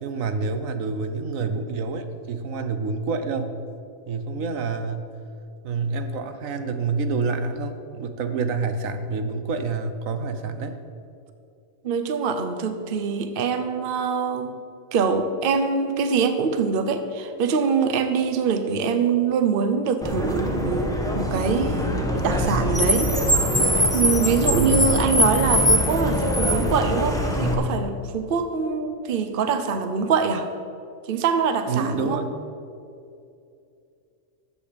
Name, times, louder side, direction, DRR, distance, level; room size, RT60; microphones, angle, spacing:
voice 1, 0.0-3.6 4.1-5.1 5.6-10.8 24.5-24.9 31.7-32.3, right 4 dB, 70° right, 9 dB, 1.2 m, -27 dB
voice 2, 11.8-14.6 14.9-23.1 23.9-30.5 31.1-32.2, right 5 dB, 45° right, 8 dB, 0.8 m, -24 dB
Car, 20.0-27.5, equal, 5° left, 1.1 m, -22 dB
13.0 x 8.0 x 5.1 m, 2.6 s
omnidirectional pair, 1.5 m